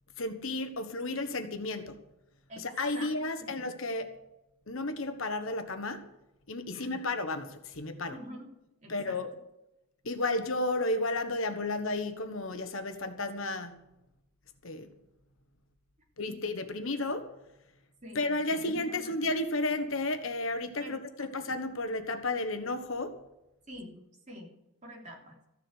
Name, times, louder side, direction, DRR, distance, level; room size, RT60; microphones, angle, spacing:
voice 1, 0.2-2.0 2.6-4.1 4.7-6.1 6.5-8.2 8.9-9.3 10.0-13.8 14.6-14.9 16.2-17.3 18.1-23.2, left 2 dB, 60° left, 8 dB, 1.3 m, -33 dB
voice 2, 2.9-3.5 6.7-7.0 8.1-8.5 8.8-9.2 16.3-16.4 18.0-19.1 20.8-21.0 23.7-24.0 24.3-24.5 24.8-25.4, equal, 35° right, -1 dB, 3.4 m, -46 dB
14.5 x 7.5 x 8.3 m, 0.89 s
head